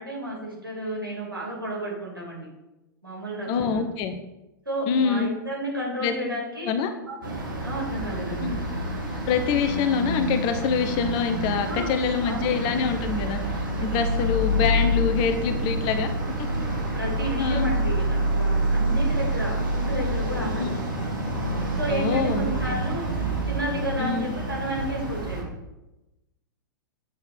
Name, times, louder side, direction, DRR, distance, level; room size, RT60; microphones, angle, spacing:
voice 1, 0.0-2.5 3.0-3.8 4.6-6.7 7.1-7.2 7.6-8.5 11.6-11.9 12.2-12.6 14.2-14.3 16.9-20.7 21.8-23.1 23.4-25.5, right 1 dB, 90° right, -4 dB, 2.7 m, -32 dB
voice 2, 3.5-4.2 4.9-5.3 6.0-6.1 6.6-6.9 8.4-8.6 9.3-16.1 17.4-17.7 20.6-20.7 21.9-22.8 24.0-24.3, left 6 dB, 40° left, 7 dB, 0.7 m, -25 dB
sound 1, 7.2-25.4, right 1 dB, 70° right, 2.2 m, -27 dB
8.4 x 3.9 x 4.2 m, 0.98 s
figure-of-eight pair, 100°, 11 cm